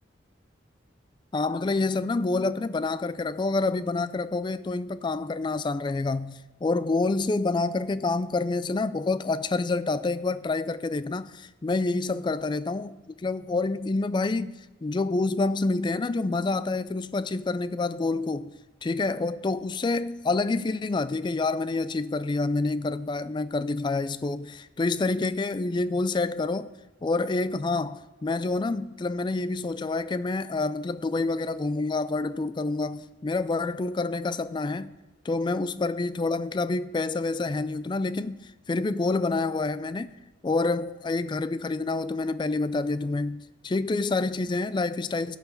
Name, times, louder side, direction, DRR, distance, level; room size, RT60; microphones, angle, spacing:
voice 1, 1.3-13.0 13.2-18.5 18.8-26.7 27.0-35.0 35.2-38.4 38.7-40.1 40.4-45.4, left 3 dB, 25° left, 0.3 m, -27 dB
16.5 x 5.6 x 4.5 m
head